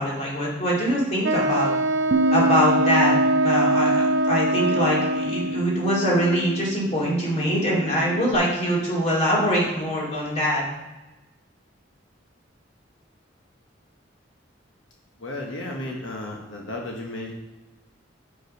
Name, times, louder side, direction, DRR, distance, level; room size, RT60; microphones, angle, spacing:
voice 1, 0.0-1.7 2.3-3.2 3.4-10.6, equal, 35° left, -5 dB, 2.5 m, -23 dB
Wind instrument woodwind instrument, 1.2-5.7, right 2 dB, 90° right, 0.8 m, -23 dB
Bass guitar, 2.1-8.4, equal, 45° right, 0.4 m, -27 dB
voice 2, 15.2-17.3, left 1 dB, 85° left, 0 dB, 1.0 m, -33 dB
6.3 x 5.4 x 5.2 m, 1.1 s
head